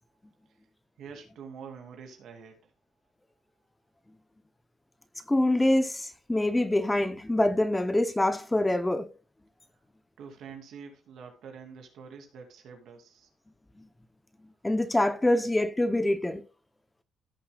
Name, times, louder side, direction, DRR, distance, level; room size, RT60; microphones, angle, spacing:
voice 1, 1.0-2.7 10.2-13.3, right 6 dB, 70° right, 2.4 m, -46 dB
voice 2, 5.3-9.1 14.6-16.4, left 1 dB, 10° left, 0.6 m, -25 dB
15.5 x 6.7 x 2.3 m
cardioid pair, 115°, 0 cm